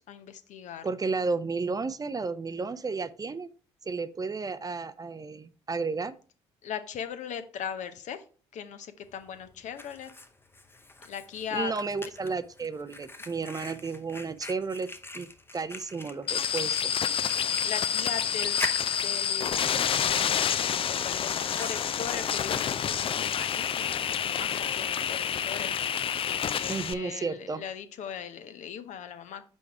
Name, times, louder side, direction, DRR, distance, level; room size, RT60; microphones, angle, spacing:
voice 1, 0.0-0.8 6.6-8.2 8.5-10.1 11.0-11.7 17.6-18.6 19.0-19.9 20.2-25.7 26.6-29.5, left 8 dB, 60° left, 9 dB, 0.8 m, -39 dB
voice 2, 0.8-3.5 3.9-6.1 11.5-14.9 15.1-15.3 15.5-17.0 26.7-27.6, right 4 dB, 25° right, 13 dB, 0.6 m, -32 dB
Fire, 9.0-24.0, left 2 dB, 15° left, 0.8 m, -44 dB
sound 1, 16.3-26.9, left 8 dB, 40° left, 0.4 m, -28 dB
5.4 x 4.6 x 4.7 m, 0.40 s
hypercardioid pair, 50°, 14 cm